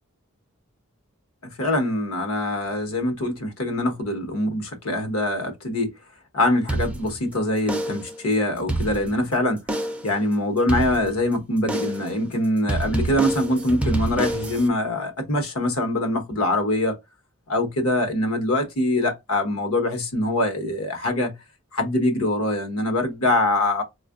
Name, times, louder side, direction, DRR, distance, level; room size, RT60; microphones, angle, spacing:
voice 1, 1.4-5.9 6.3-9.6 10.0-17.0 17.5-21.3 21.7-23.8, left 1 dB, 85° left, 1.1 m, -23 dB
sound 1, 6.7-7.3 7.7-8.2 8.6-9.3 9.7-10.2 10.7-11.3 11.7-12.2 12.7-14.7, right 1 dB, 5° right, 0.3 m, -27 dB
4.3 x 2.4 x 2.3 m
head